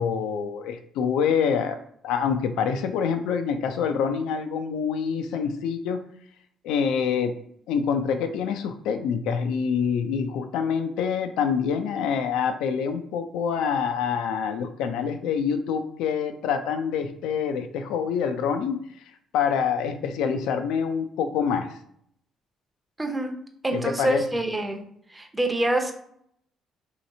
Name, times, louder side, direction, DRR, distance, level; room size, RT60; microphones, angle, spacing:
voice 1, 0.0-1.8 2.0-6.0 6.6-7.3 7.7-18.8 19.3-21.7 23.7-24.2, left 6 dB, 80° left, 7 dB, 0.3 m, -26 dB
voice 2, 23.0-23.3 23.6-24.8 25.1-25.9, right 1 dB, 20° right, 4 dB, 0.6 m, -26 dB
3.1 x 2.8 x 2.7 m, 0.67 s
supercardioid pair, 65°, 0 cm